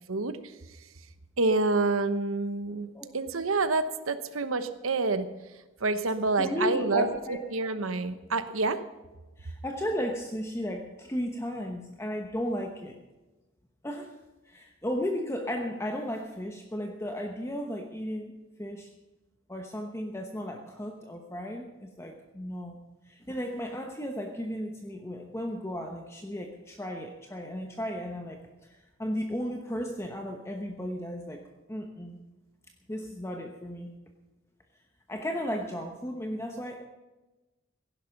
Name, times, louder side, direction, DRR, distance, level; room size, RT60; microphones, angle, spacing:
voice 1, 1.4-2.9 3.1-5.3 5.8-8.8, right 3 dB, 85° right, 11 dB, 1.0 m, -27 dB
voice 2, 6.4-7.4 9.4-12.9 13.8-14.1 14.5-18.3 18.6-18.9 19.5-22.8 23.0-31.4 31.7-32.2 32.9-33.9 35.1-36.8, equal, 15° left, 3 dB, 1.0 m, -35 dB
16.5 x 11.0 x 5.9 m, 1.1 s
head